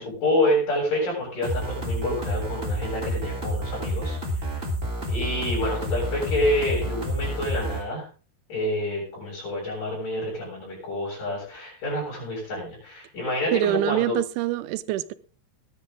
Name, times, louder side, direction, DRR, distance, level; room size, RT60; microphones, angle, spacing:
voice 1, 0.0-4.6 5.1-8.1 8.5-14.1, left 1 dB, 45° left, 8.5 m, -28 dB
sound 1, 1.4-7.8, equal, 15° right, 3.0 m, -29 dB
voice 2, 13.5-15.1, right 15 dB, 85° right, 3.1 m, -25 dB
20.0 x 10.5 x 3.8 m
omnidirectional pair, 5.3 m